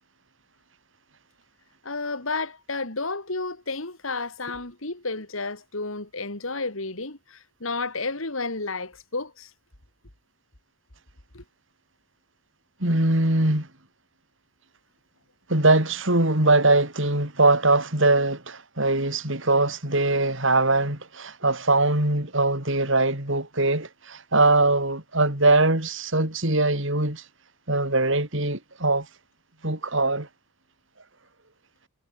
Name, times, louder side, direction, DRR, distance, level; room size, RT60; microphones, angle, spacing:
voice 1, 1.8-9.5 11.3-11.4, left 3 dB, 70° left, 3.3 m, -31 dB
voice 2, 12.8-13.7 15.5-27.2 27.7-29.1 29.6-30.3, right 2 dB, 60° right, 5.7 m, -22 dB
head